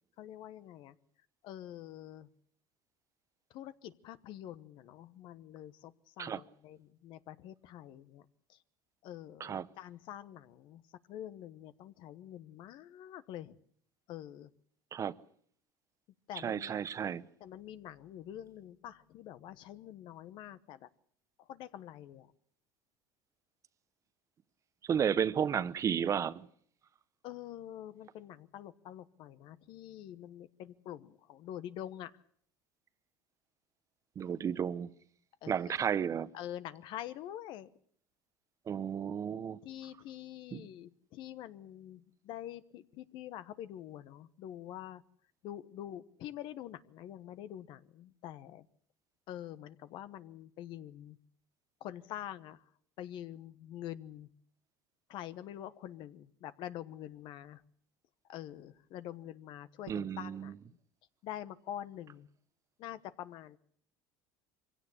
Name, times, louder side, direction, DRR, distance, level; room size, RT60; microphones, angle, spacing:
voice 1, 0.2-0.9 1.4-2.3 3.5-8.2 8.5-8.6 9.0-10.8 11.1-13.6 14.1-14.5 16.3-16.8 17.4-20.9 21.4-22.3 27.2-32.1 35.4-35.5 36.3-37.7 39.6-45.0 45.4-48.7 49.3-51.2 51.8-52.6 53.0-54.3 55.1-57.6 58.3-60.5 61.2-62.3 62.8-63.6, left 12 dB, 60° left, 1.1 m, -46 dB
voice 2, 16.4-17.3 24.9-26.5 34.2-34.9 35.5-36.3 38.7-39.6 40.5-40.7 59.9-60.6, right 8 dB, 35° right, 0.9 m, -33 dB
23.5 x 16.5 x 8.5 m
supercardioid pair, 105°, 9 cm